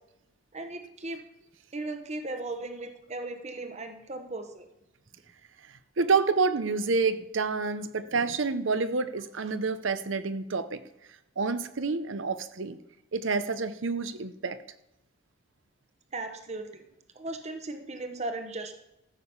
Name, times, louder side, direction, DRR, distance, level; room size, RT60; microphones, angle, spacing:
voice 1, 0.5-1.2 1.7-4.7 8.1-8.3 16.1-16.8 17.1-18.7, right 2 dB, 35° right, 6 dB, 1.0 m, -37 dB
voice 2, 6.0-10.8 11.4-12.8 13.1-14.6, right 4 dB, 65° right, 12 dB, 0.7 m, -28 dB
14.0 x 6.8 x 5.6 m, 0.90 s
head